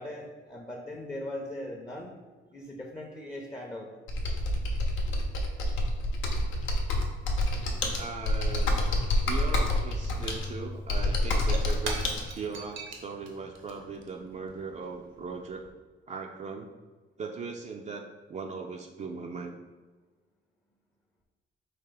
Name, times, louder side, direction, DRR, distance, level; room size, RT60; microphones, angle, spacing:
voice 1, 0.0-2.1 2.5-3.9, left 1 dB, 15° left, 1 dB, 0.6 m, -39 dB
Computer keyboard, 4.1-12.2, left 1 dB, 80° left, 0.8 m, -28 dB
voice 2, 8.0-8.8 9.2-12.0 12.3-15.6 16.1-16.7 17.2-19.6, right 5 dB, 35° right, 2 dB, 0.4 m, -39 dB
Shatter / Crushing, 10.8-15.7, right 4 dB, 75° right, 0.8 m, -43 dB
4.3 x 2.9 x 3.9 m, 1.3 s
cardioid pair, 90°, 20 cm